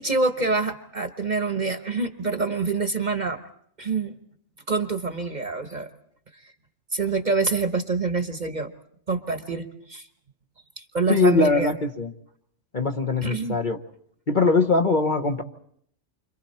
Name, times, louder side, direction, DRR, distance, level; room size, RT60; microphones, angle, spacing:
voice 1, 0.0-3.4 3.8-4.2 4.7-5.9 6.9-8.7 9.1-10.1 10.8-11.7 13.2-13.6, right 3 dB, 35° right, 7 dB, 1.1 m, -26 dB
voice 2, 11.1-12.1 12.7-13.8 14.3-15.4, left 3 dB, 40° left, 5 dB, 1.2 m, -21 dB
29.5 x 26.0 x 4.3 m, 0.65 s
omnidirectional pair, 1.3 m